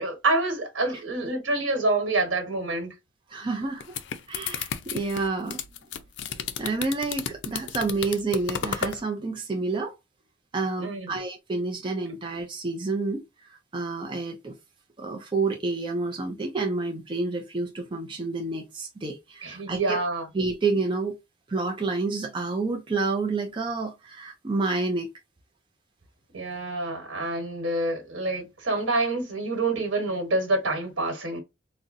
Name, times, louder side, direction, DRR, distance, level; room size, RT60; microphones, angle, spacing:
voice 1, 0.0-2.9 10.8-11.2 19.4-20.3 26.3-31.4, right 2 dB, 80° right, 1.3 m, -27 dB
voice 2, 3.3-4.0 4.3-5.6 6.6-9.9 10.5-13.2 13.5-14.6 15.0-20.0 20.3-21.2 21.5-25.1, right 3 dB, 25° right, 0.5 m, -29 dB
sound 1, 3.6-9.0, left 7 dB, 65° left, 0.4 m, -33 dB
3.8 x 2.1 x 2.5 m
head